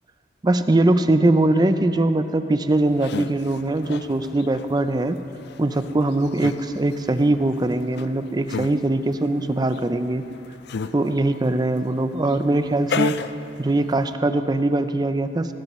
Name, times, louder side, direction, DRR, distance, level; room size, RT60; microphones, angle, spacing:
voice 1, 0.4-5.2 5.6-10.2 10.9-13.2 13.6-15.5, right 2 dB, 20° right, 10 dB, 0.5 m, -21 dB
sound 1, 2.7-14.1, left 5 dB, 60° left, 0.4 m, -35 dB
18.0 x 15.5 x 3.1 m, 2.9 s
head